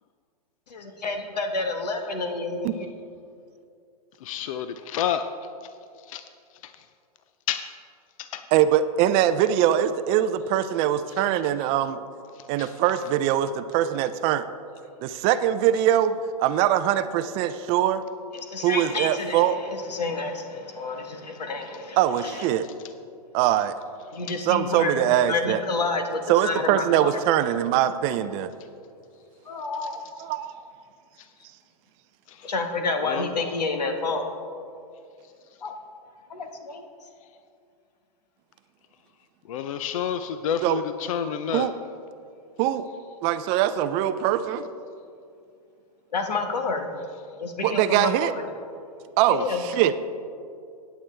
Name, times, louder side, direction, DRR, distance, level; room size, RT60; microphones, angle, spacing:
voice 1, 0.7-2.7 18.3-22.5 24.1-27.1 29.4-30.0 32.4-34.2 35.6-35.7 36.3-36.8 46.1-46.9 47.4-48.4 49.3-49.6, left 3 dB, 85° left, 5 dB, 1.4 m, -29 dB
voice 2, 4.2-5.2 5.6-5.7 6.0-6.2 6.6-6.8 7.5-7.7 8.2-8.5 12.3-12.8 24.3-24.4 31.2-31.3 32.3-32.5 33.0-33.3 39.5-41.7, left 9 dB, 55° left, 10 dB, 0.5 m, -30 dB
voice 3, 8.5-12.0 12.5-14.5 15.0-18.0 18.6-19.6 22.0-22.7 23.3-23.7 24.5-25.6 26.3-28.5 30.2-30.5 40.6-40.8 41.5-41.7 42.6-42.9 43.2-44.7 47.6-48.3 49.2-49.9, right 11 dB, 30° right, 12 dB, 0.4 m, -22 dB
15.5 x 9.1 x 3.3 m, 2.4 s
hypercardioid pair, 130°, 20 cm